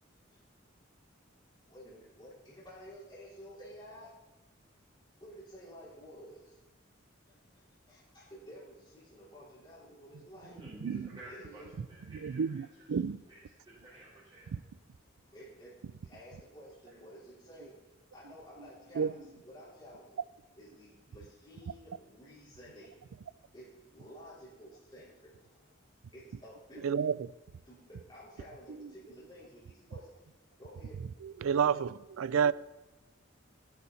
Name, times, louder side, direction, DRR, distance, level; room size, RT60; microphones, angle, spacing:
voice 1, 1.7-4.1 5.2-6.6 7.3-10.6 10.9-11.7 15.3-17.7 18.1-20.2 20.5-22.9 23.5-25.7 26.1-26.9 27.6-30.2 30.6-31.0, equal, 25° left, 4.1 m, -52 dB
voice 2, 10.4-12.9 13.3-14.6 15.2-15.3 16.8-17.0, right 1 dB, 25° right, 3.8 m, -53 dB
voice 3, 12.1-13.2 14.5-14.6 19.0-19.1 26.8-27.3 31.2-32.5, right 7 dB, 90° right, 0.4 m, -30 dB
14.5 x 10.5 x 4.1 m
head